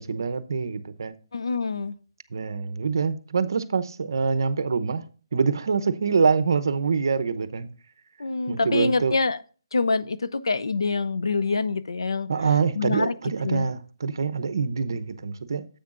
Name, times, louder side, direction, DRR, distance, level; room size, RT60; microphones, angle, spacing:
voice 1, 0.0-1.2 2.3-5.0 5.3-7.7 8.5-9.1 12.3-15.7, right 5 dB, 55° right, 0.8 m, -25 dB
voice 2, 1.3-1.9 8.2-9.4 9.7-12.3 12.8-13.1 13.4-13.7, left 4 dB, 85° left, 0.7 m, -25 dB
10.0 x 8.0 x 2.5 m
hypercardioid pair, 175°, 2 cm